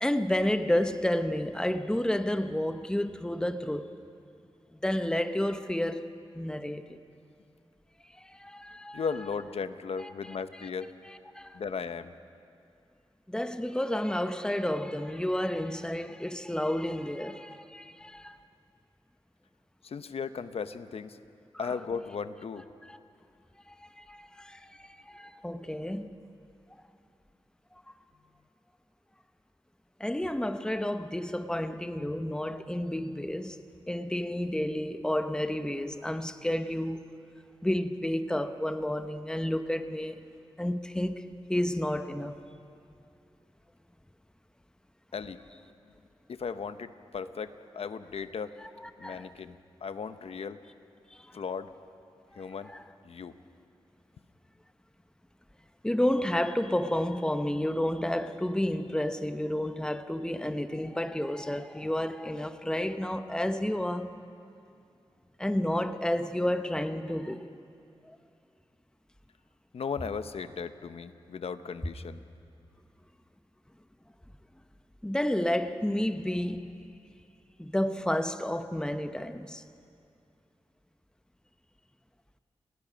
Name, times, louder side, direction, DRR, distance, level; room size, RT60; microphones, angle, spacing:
voice 1, 0.0-3.9 4.8-7.0 8.1-9.0 10.0-10.4 11.1-11.6 13.3-18.4 21.6-21.8 22.8-23.0 23.7-26.2 30.0-33.6 33.9-37.1 37.6-40.2 40.6-42.4 49.0-49.3 51.1-51.4 52.3-52.8 55.8-64.1 65.4-67.5 68.0-68.2 75.0-76.7 77.6-79.6, left 1 dB, 10° left, 0.9 m, -31 dB
voice 2, 8.9-10.9 11.5-12.2 19.8-21.2 21.6-22.6 45.1-45.4 46.3-48.5 49.0-50.6 51.3-51.7 52.4-52.7 53.0-53.3 69.7-72.2, left 5 dB, 80° left, 0.8 m, -36 dB
29.5 x 18.5 x 5.2 m
wide cardioid pair, 80°, 10 cm